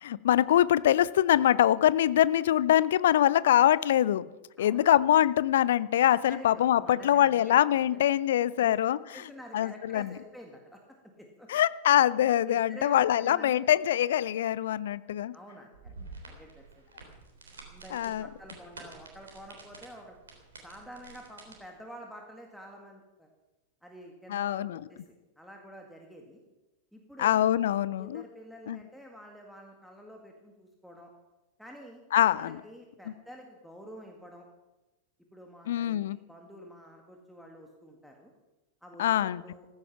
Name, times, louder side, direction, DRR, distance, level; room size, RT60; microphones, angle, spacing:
voice 1, 0.0-4.2 4.6-9.0 9.5-10.2 11.5-15.3 17.9-18.3 24.3-24.8 27.2-28.2 28.7-28.8 32.1-32.6 35.7-36.2 39.0-39.4, left 11 dB, 60° left, 19 dB, 0.5 m, -24 dB
voice 2, 4.6-4.9 6.1-8.0 8.6-8.7 9.1-10.8 11.1-11.5 12.4-13.6 15.3-16.0 16.2-17.1 17.5-20.2 20.6-23.3 23.8-26.4 26.9-27.4 28.0-31.1 31.6-32.0 32.3-34.5 35.3-38.3 38.8-39.7, equal, ahead, 1 dB, 1.9 m, -48 dB
sound 1, 15.7-21.5, right 3 dB, 70° right, 3.5 m, -49 dB
15.0 x 15.0 x 5.8 m, 1.1 s
figure-of-eight pair, 90°, 0 cm